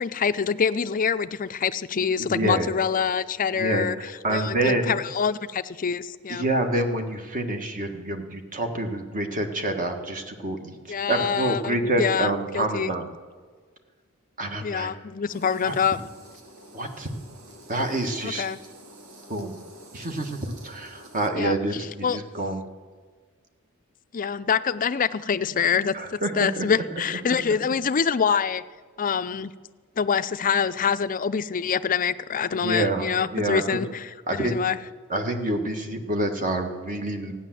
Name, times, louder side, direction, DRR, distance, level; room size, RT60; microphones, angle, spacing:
voice 1, 0.0-4.0 4.3-6.5 10.9-12.9 14.6-16.0 18.2-18.6 21.3-21.5 22.0-22.2 24.1-28.6 29.0-29.5 30.0-34.8, left 6 dB, 40° left, 12 dB, 0.5 m, -25 dB
voice 2, 2.2-2.7 3.6-5.0 6.3-13.0 14.4-14.9 15.6-15.7 16.7-17.1 17.7-18.5 19.3-19.6 19.9-22.6 25.9-26.7 27.3-27.4 32.5-33.8 34.3-34.6 35.1-37.3, right 1 dB, 40° right, 5 dB, 1.5 m, -27 dB
sound 1, 15.3-21.3, right 1 dB, 90° right, 1.7 m, -48 dB
14.5 x 9.8 x 7.6 m, 1.5 s
head